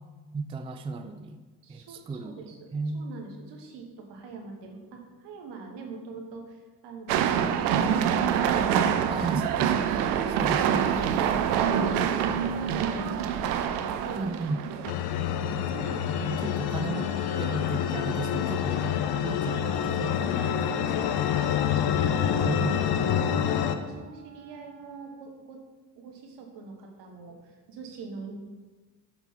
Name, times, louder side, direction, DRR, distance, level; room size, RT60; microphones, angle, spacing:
voice 1, 0.3-1.4 1.7-3.1 9.1-11.0 14.2-14.6 16.2-17.1 17.4-21.2 22.4-22.8, right 3 dB, 15° right, 8 dB, 0.4 m, -35 dB
voice 2, 1.6-2.6 2.9-8.6 9.9-14.4 14.7-14.9 15.2-15.5 15.8-16.2 21.3-25.6 26.0-28.4, right 4 dB, 65° right, 2 dB, 1.4 m, -43 dB
sound 1, 7.1-14.9, right 8 dB, 80° right, 0.6 m, -25 dB
sound 2, 14.9-23.8, left 9 dB, 55° left, 0.6 m, -27 dB
Wind instrument woodwind instrument, 15.6-25.2, right 7 dB, 40° right, 0.9 m, -48 dB
5.8 x 4.4 x 5.6 m, 1.3 s
hypercardioid pair, 55°, 46 cm